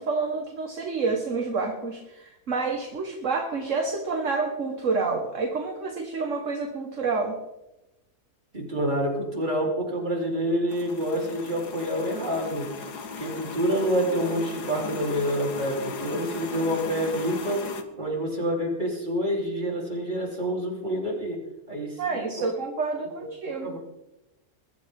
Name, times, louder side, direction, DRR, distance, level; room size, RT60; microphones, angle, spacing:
voice 1, 0.0-7.4 22.0-23.8, right 4 dB, 50° right, 3 dB, 1.8 m, -28 dB
voice 2, 8.5-12.7 13.2-17.7 18.0-21.4 21.7-22.5 23.2-23.3 23.6-23.8, equal, 30° right, -2 dB, 3.9 m, -27 dB
sound 1, 10.7-17.8, left 5 dB, 85° left, 1.9 m, -37 dB
22.0 x 13.0 x 3.7 m, 0.95 s
omnidirectional pair, 1.7 m